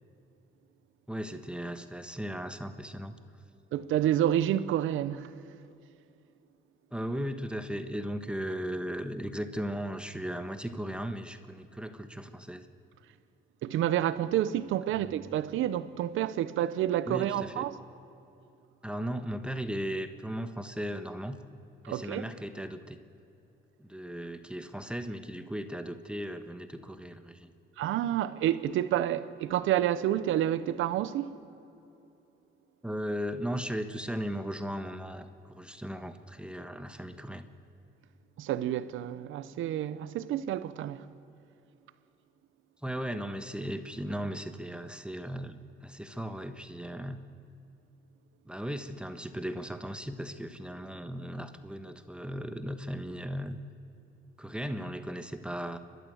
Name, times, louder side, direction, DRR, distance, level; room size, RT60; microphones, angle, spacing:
voice 1, 1.1-3.2 6.9-12.7 17.1-17.7 18.8-21.4 21.9-23.0 23.8-27.5 32.8-37.5 42.8-47.2 48.4-53.6 54.4-55.8, equal, 5° right, 1.3 m, -37 dB
voice 2, 3.7-5.3 13.6-17.8 21.8-22.2 27.8-31.3 38.4-41.1, right 12 dB, 85° right, 0.9 m, -29 dB
30.0 x 12.5 x 8.0 m
cardioid pair, 90°, 20 cm